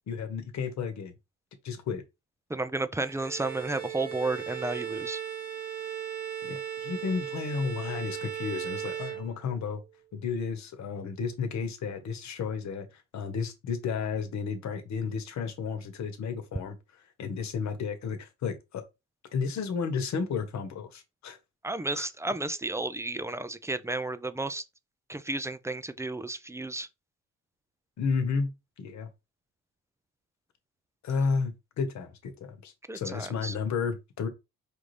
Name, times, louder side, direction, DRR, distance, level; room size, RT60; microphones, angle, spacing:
voice 1, 0.1-1.1 1.6-2.0 6.5-9.8 10.1-16.8 17.2-18.8 19.3-21.4 21.9-22.1 28.0-28.5 28.8-29.1 31.0-34.3, left 5 dB, 65° left, 1.1 m, -32 dB
voice 2, 2.5-5.2 21.6-24.6 25.1-26.9 32.9-33.5, right 2 dB, 10° right, 0.3 m, -32 dB
Bowed string instrument, 3.0-9.8, right 9 dB, 50° right, 1.2 m, -37 dB
5.0 x 2.6 x 3.2 m
cardioid pair, 90°, 30 cm